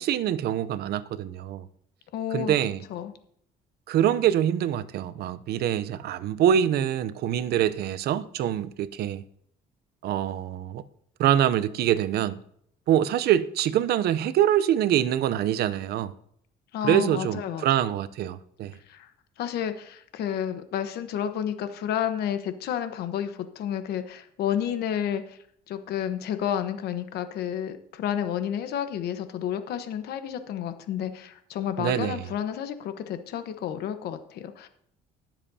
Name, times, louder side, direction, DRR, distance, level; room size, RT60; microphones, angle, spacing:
voice 1, 0.0-1.7 2.3-2.8 3.9-9.2 10.0-10.8 11.2-12.4 12.9-16.1 16.8-18.7 31.8-32.2, right 10 dB, 70° right, 0.7 m, -25 dB
voice 2, 2.1-2.5 2.9-3.1 16.7-17.6 18.9-19.1 19.4-25.4 25.7-34.7, left 9 dB, 70° left, 1.1 m, -31 dB
20.0 x 7.4 x 2.8 m
cardioid pair, 110°, 17 cm